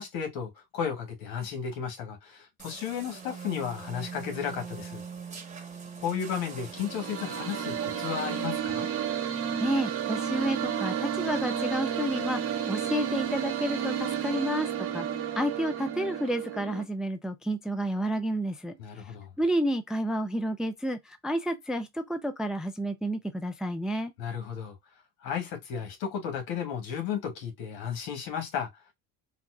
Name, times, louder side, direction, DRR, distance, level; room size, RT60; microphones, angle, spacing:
voice 1, 0.0-5.0 6.0-8.9 18.8-19.3 24.2-24.7 25.2-28.7, left 7 dB, 75° left, 1.5 m, -34 dB
sound 1, 2.6-8.5, right 5 dB, 20° right, 1.2 m, -42 dB
sound 2, 6.6-16.8, right 9 dB, 40° right, 0.9 m, -32 dB
voice 2, 9.6-14.7 14.9-15.1 15.4-18.8 19.4-24.1, equal, ahead, 0.3 m, -30 dB
4.1 x 2.4 x 2.3 m
supercardioid pair, 105°, 37 cm